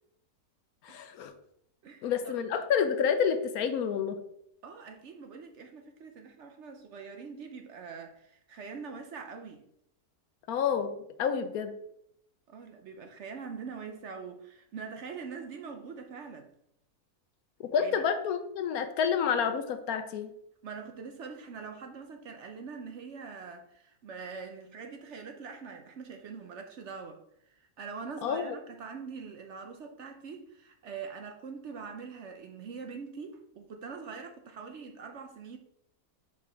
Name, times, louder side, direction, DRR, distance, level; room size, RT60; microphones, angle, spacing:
voice 1, 0.8-1.3 2.0-4.2 10.5-11.8 17.6-20.3 28.2-28.6, left 7 dB, 75° left, 1.2 m, -29 dB
voice 2, 1.8-2.4 4.6-9.6 12.5-16.5 17.8-18.0 20.6-35.6, right 5 dB, 60° right, 0.8 m, -43 dB
5.7 x 5.0 x 4.6 m
omnidirectional pair, 1.6 m